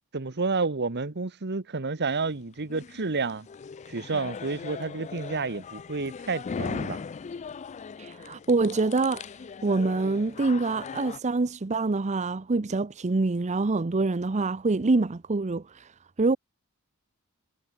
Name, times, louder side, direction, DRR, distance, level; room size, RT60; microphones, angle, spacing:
voice 1, 0.1-3.5 3.9-7.0, right 4 dB, 50° right, 1.2 m, -30 dB
sound 1, 2.2-11.2, left 5 dB, 30° left, 0.3 m, -39 dB
voice 2, 8.0-9.2 9.6-16.4, right 3 dB, 30° right, 0.6 m, -26 dB
head